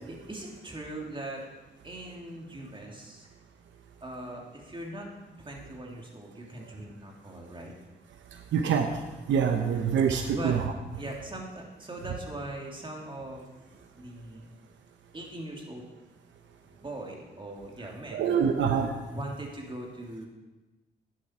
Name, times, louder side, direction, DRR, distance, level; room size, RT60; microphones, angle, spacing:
voice 1, 0.1-1.4 1.8-3.3 4.0-5.1 5.4-7.7 10.3-10.5 11.0-14.5 15.1-15.9 16.6-18.3 19.1-20.3, right 1 dB, 25° right, -1 dB, 3.0 m, -40 dB
voice 2, 8.5-8.9 9.3-10.7 18.1-18.9, right 7 dB, 85° right, 5 dB, 0.9 m, -25 dB
12.5 x 9.8 x 4.6 m, 1.1 s
cardioid pair, 65°, 19 cm